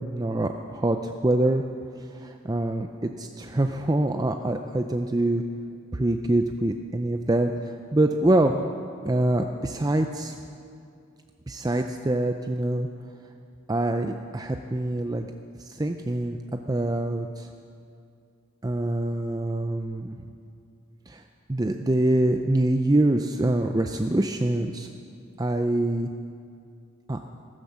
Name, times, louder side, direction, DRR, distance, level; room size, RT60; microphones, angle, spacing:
voice 1, 0.0-1.6 2.1-5.4 5.9-8.7 9.0-10.3 11.5-12.9 13.7-15.3 15.6-17.5 18.6-20.3 21.1-21.2 21.5-24.9 25.4-26.1 27.1-27.2, right 1 dB, 20° right, 5 dB, 0.4 m, -25 dB
15.5 x 12.0 x 7.1 m, 2.4 s
head